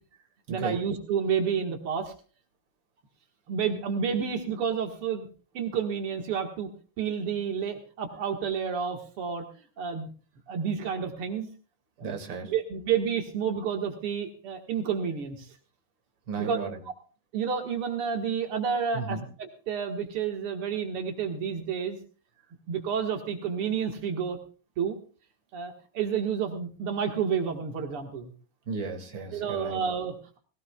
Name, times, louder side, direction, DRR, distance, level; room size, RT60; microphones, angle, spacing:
voice 1, 0.5-2.1 3.5-5.3 5.5-6.7 7.0-9.4 9.8-10.1 10.5-11.5 12.0-12.1 12.5-15.5 16.4-16.6 17.3-22.0 22.7-24.4 24.8-25.0 25.5-28.3 29.3-30.4, right 7 dB, 85° right, 4 dB, 2.5 m, -30 dB
voice 2, 12.0-12.5 16.3-16.8 18.9-19.3 28.7-29.8, right 4 dB, 60° right, 5 dB, 2.9 m, -34 dB
19.5 x 17.5 x 2.3 m, 0.37 s
omnidirectional pair, 2.4 m